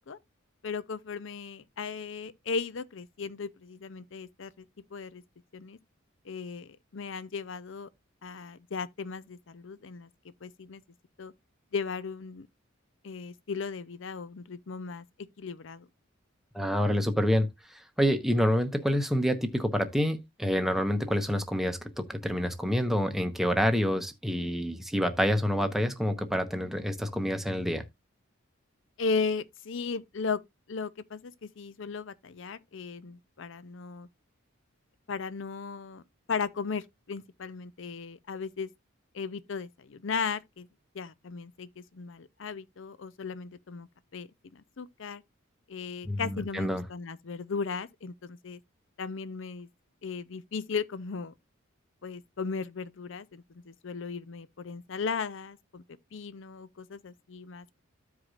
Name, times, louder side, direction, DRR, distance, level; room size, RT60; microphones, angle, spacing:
voice 1, 0.6-4.6 4.9-5.2 5.5-5.8 6.2-7.9 8.2-10.8 11.2-11.3 11.7-12.5 13.0-15.0 15.4-15.9 29.0-30.4 30.7-34.1 35.1-36.0 36.3-38.7 39.1-40.7 40.9-43.9 44.1-45.2 45.7-48.6 49.0-49.7 50.0-51.3 52.0-55.8 56.1-57.8, left 5 dB, 65° left, 0.6 m, -36 dB
voice 2, 16.5-27.8 46.0-46.8, equal, ahead, 0.9 m, -27 dB
14.0 x 4.8 x 2.4 m
head